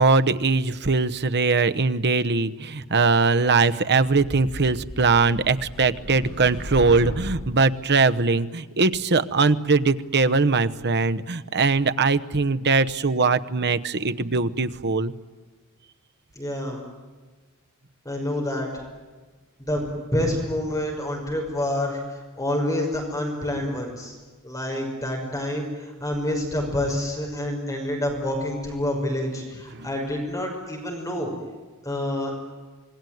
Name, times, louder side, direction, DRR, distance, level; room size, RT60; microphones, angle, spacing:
voice 1, 0.0-15.1 29.7-29.9, right 4 dB, 50° right, 12 dB, 1.0 m, -21 dB
sound 1, 4.2-7.7, equal, 70° left, 4.1 m, -36 dB
voice 2, 16.4-16.8 18.0-18.7 19.6-22.0 22.4-24.1 24.4-25.7 26.0-31.3 31.8-32.3, left 1 dB, 15° left, 1 dB, 6.0 m, -27 dB
27.0 x 20.0 x 9.3 m, 1.3 s
head